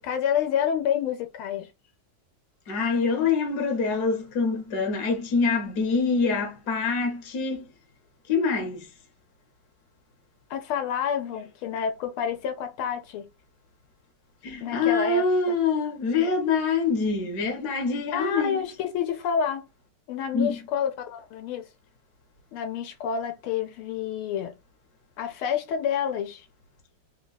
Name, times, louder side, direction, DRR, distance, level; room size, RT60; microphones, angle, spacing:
voice 1, 0.0-1.7 10.5-13.3 14.6-15.5 18.1-19.7 20.1-21.7 22.5-24.5 25.2-26.5, left 8 dB, 85° left, 1.6 m, -28 dB
voice 2, 2.7-7.6 8.3-8.9 14.4-18.6 20.3-20.6, left 4 dB, 55° left, 1.4 m, -25 dB
3.9 x 2.3 x 3.9 m
omnidirectional pair, 2.3 m